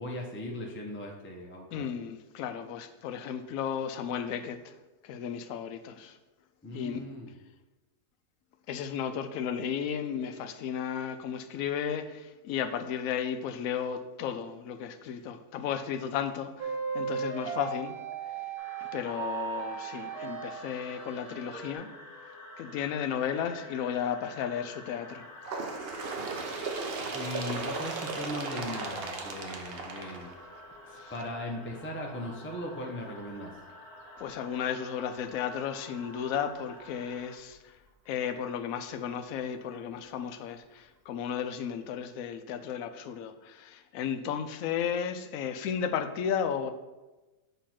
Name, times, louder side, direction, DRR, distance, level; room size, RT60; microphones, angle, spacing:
voice 1, 0.0-1.9 6.6-7.4 27.1-30.3 30.9-33.5, left 1 dB, 10° left, 0 dB, 0.6 m, -38 dB
voice 2, 1.7-4.6 5.0-6.2 6.7-7.0 8.7-18.0 18.9-21.9 22.6-25.2 31.0-31.1 34.2-37.6 38.1-46.7, left 8 dB, 70° left, 8 dB, 0.9 m, -34 dB
sound 1, 16.6-21.7, right 5 dB, 80° right, 1.3 m, -36 dB
sound 2, 18.6-37.3, left 2 dB, 30° left, 1.0 m, -49 dB
Bird, 25.4-30.9 31.7-31.9 32.2-32.3 33.2-33.3 34.2-34.3 35.2-35.3, right 3 dB, 50° right, 0.8 m, -36 dB
6.8 x 3.0 x 5.8 m, 1.1 s
omnidirectional pair, 1.6 m